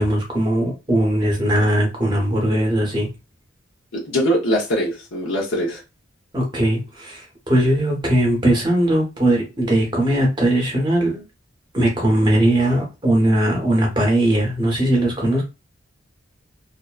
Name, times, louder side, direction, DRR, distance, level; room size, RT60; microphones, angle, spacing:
voice 1, 0.0-3.1 6.3-11.3 11.7-15.4, right 1 dB, 25° right, 0.9 m, -19 dB
voice 2, 4.1-5.8, equal, 80° left, 0.7 m, -21 dB
2.5 x 2.1 x 2.3 m
head